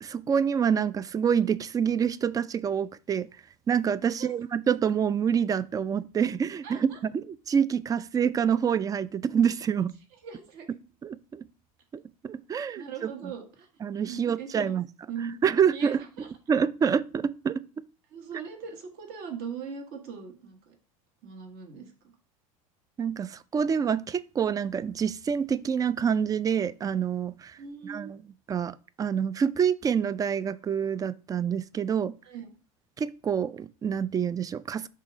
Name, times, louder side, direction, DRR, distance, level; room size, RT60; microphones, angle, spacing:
voice 1, 0.0-3.3 3.7-9.9 11.0-11.4 11.9-13.1 13.8-14.9 15.4-16.0 16.5-17.8 23.0-27.6 27.8-28.2 28.5-32.2 33.0-34.9, right 7 dB, 20° right, 0.3 m, -27 dB
voice 2, 6.6-7.0 10.2-10.7 12.7-13.7 14.0-14.7 15.1-15.4 15.7-16.3 18.1-20.7 21.2-21.9 27.6-28.1 32.2-32.5, right 6 dB, 60° right, 1.5 m, -40 dB
5.5 x 3.7 x 4.9 m
hypercardioid pair, 100°, 18 cm